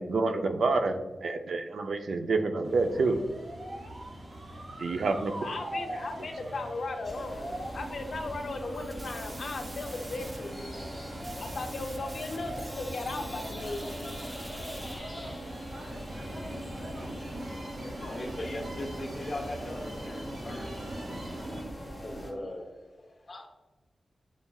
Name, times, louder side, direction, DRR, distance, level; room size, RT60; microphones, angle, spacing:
voice 1, 0.0-3.2 4.8-5.3, right 3 dB, 80° right, 6 dB, 0.4 m, -28 dB
sound 1, 2.6-21.6, right 1 dB, 60° right, 0.8 m, -42 dB
voice 2, 3.7-4.0 5.3-10.9 11.4-13.9 17.8-18.4, left 3 dB, 65° left, 4 dB, 0.5 m, -37 dB
sound 2, 7.0-22.3, equal, 15° left, 1.0 m, -42 dB
sound 3, 8.7-15.0, right 1 dB, 30° right, 0.5 m, -46 dB
voice 3, 17.8-20.7 21.9-22.7 23.2-23.5, left 1 dB, 35° left, 1 dB, 0.7 m, -39 dB
6.9 x 2.4 x 2.3 m, 1.2 s
wide cardioid pair, 145°, 0 cm